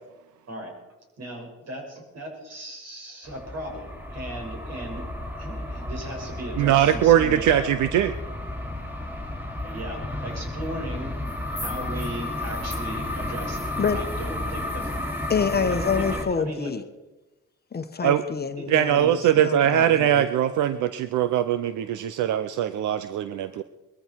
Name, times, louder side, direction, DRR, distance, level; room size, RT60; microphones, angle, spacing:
voice 1, 1.2-5.0 5.3-7.7 9.6-11.1 11.6-15.2 15.7-16.7 18.6-18.7 19.0-19.2 20.1-20.3, right 1 dB, 60° right, 1 dB, 6.1 m, -37 dB
sound 1, 3.3-16.2, left 1 dB, 5° right, 3.2 m, -32 dB
voice 2, 6.6-8.1 18.0-18.2 18.7-23.6, right 10 dB, 80° right, 12 dB, 0.7 m, -21 dB
voice 3, 15.3-16.8 17.7-20.2, left 5 dB, 30° left, 8 dB, 1.1 m, -27 dB
21.5 x 14.5 x 4.6 m, 1.0 s
cardioid pair, 90°, 30 cm